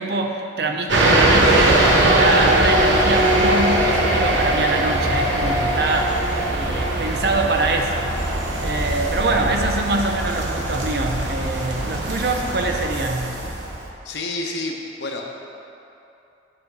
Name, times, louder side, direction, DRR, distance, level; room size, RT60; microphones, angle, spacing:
voice 1, 0.0-13.4, right 2 dB, 60° right, 3 dB, 0.6 m, -24 dB
sound 1, 0.9-13.9, right 1 dB, 85° right, 0.9 m, -20 dB
voice 2, 14.0-15.2, left 2 dB, 75° left, 1 dB, 0.9 m, -29 dB
7.8 x 5.0 x 4.6 m, 2.8 s
head